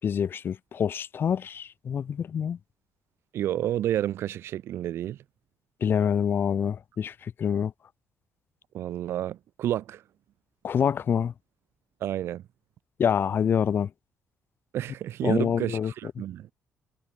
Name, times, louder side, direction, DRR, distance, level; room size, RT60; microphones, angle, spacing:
voice 1, 0.0-2.6 5.8-7.7 10.6-11.3 13.0-13.9 15.2-15.9, left 8 dB, 55° left, 3.6 m, -26 dB
voice 2, 3.3-5.2 8.7-10.0 12.0-12.4 14.7-16.5, right 12 dB, 75° right, 3.1 m, -30 dB
supercardioid pair, 65°, 4 cm